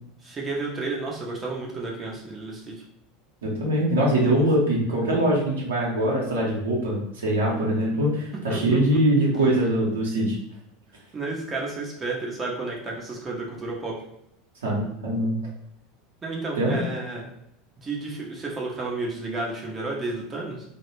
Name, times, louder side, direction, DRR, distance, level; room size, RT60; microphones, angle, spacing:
voice 1, 0.2-2.8 8.5-8.8 11.1-14.0 16.2-17.3 17.8-20.6, right 3 dB, 25° right, -2 dB, 0.6 m, -31 dB
voice 2, 3.4-10.4 14.6-15.4 16.6-16.8, right 1 dB, 75° right, -3 dB, 0.8 m, -23 dB
2.3 x 2.1 x 3.1 m, 0.78 s
figure-of-eight pair, 80°, 0 cm